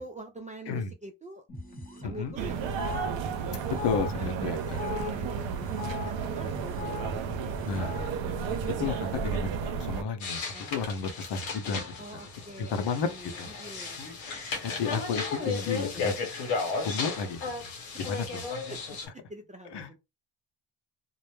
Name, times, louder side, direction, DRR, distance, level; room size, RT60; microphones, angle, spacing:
voice 1, 0.0-1.5 2.0-2.8 4.2-4.3 4.7-8.1 10.5-10.8 12.0-14.6 15.4-16.2 16.6-16.7 17.9-18.8 19.1-20.0, right 1 dB, 15° right, 0.4 m, -45 dB
sound 1, 1.5-9.2, left 5 dB, 20° left, 0.9 m, -41 dB
sound 2, 2.4-10.0, right 6 dB, 65° right, 0.6 m, -32 dB
voice 2, 3.8-4.8 7.6-7.9 8.8-10.4 10.7-11.8 12.6-13.1 13.4-13.5 14.6-16.1 16.8-17.4 18.0-18.4 19.7-19.9, left 5 dB, 55° left, 0.7 m, -32 dB
sound 3, 10.2-19.1, left 4 dB, 80° left, 1.0 m, -34 dB
2.1 x 2.0 x 3.1 m
supercardioid pair, 55°, 49 cm